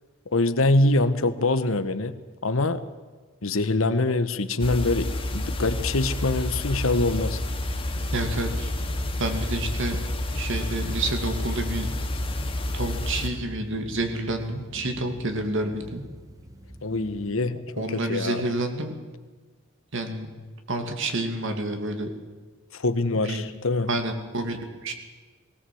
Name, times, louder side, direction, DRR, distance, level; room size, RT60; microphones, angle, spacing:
voice 1, 0.3-2.1 2.4-2.8 3.4-7.4 16.8-17.6 17.9-18.4 22.7-23.9, left 2 dB, 70° left, 11 dB, 1.1 m, -24 dB
sound 1, 4.6-13.3, left 1 dB, 25° left, 2.3 m, -29 dB
sound 2, 6.5-17.4, equal, 15° right, 1.4 m, -43 dB
voice 2, 8.1-8.7 9.2-10.0 10.3-11.9 12.7-16.0 17.8-18.9 19.9-20.3 20.7-22.1 23.1-23.4 23.9-24.9, right 2 dB, 65° right, 5 dB, 2.5 m, -29 dB
18.5 x 18.5 x 7.8 m, 1.4 s
head